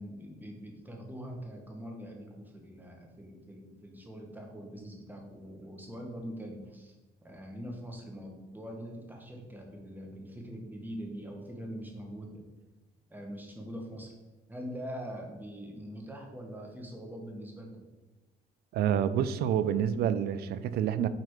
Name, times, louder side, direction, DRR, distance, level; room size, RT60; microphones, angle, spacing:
voice 1, 0.0-6.9 7.2-12.4 13.1-14.1 14.5-17.8, equal, 10° right, 1 dB, 1.8 m, -43 dB
voice 2, 18.7-21.1, right 9 dB, 70° right, 14 dB, 0.6 m, -28 dB
8.3 x 4.2 x 5.0 m, 1.1 s
cardioid pair, 110°, 17 cm